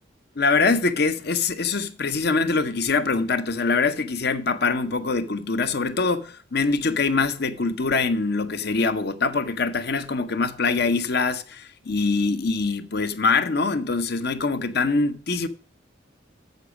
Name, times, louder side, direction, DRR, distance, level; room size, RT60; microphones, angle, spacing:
voice 1, 0.4-15.5, left 4 dB, 55° left, 0.8 m, -24 dB
8.2 x 7.1 x 4.9 m
head